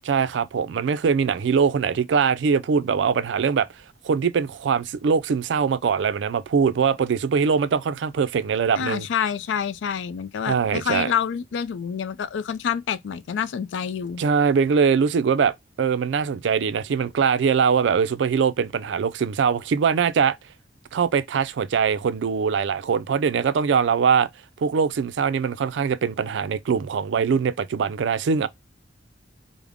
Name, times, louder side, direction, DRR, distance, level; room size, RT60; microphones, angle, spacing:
voice 1, 0.1-3.7 4.0-9.1 10.5-11.1 14.2-20.4 20.9-24.3 24.6-28.5, right 6 dB, 75° right, 0.3 m, -22 dB
voice 2, 8.8-14.2, left 8 dB, 75° left, 0.3 m, -27 dB
3.4 x 2.0 x 3.4 m
head